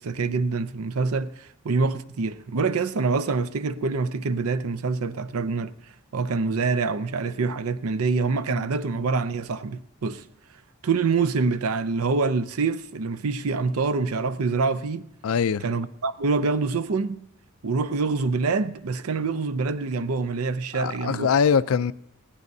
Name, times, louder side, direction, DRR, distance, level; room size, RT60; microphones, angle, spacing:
voice 1, 0.0-5.7 6.1-10.2 10.8-15.0 15.6-17.2 17.6-21.3, right 4 dB, 85° right, 0.6 m, -26 dB
voice 2, 15.2-15.6 20.7-21.9, left 6 dB, 70° left, 0.4 m, -22 dB
20.0 x 16.0 x 2.7 m
head